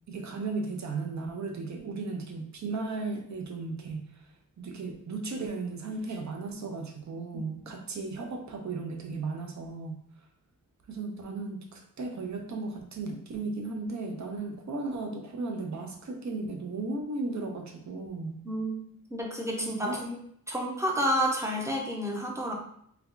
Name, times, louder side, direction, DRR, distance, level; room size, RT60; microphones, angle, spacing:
voice 1, 0.1-4.1 4.6-10.0 10.9-18.4 19.6-20.0, right 3 dB, 55° right, 3 dB, 0.6 m, -35 dB
voice 2, 18.4-18.8 19.1-20.2 20.5-22.5, equal, 10° right, -1 dB, 0.6 m, -30 dB
2.8 x 2.3 x 3.7 m, 0.68 s
wide cardioid pair, 120°, 34 cm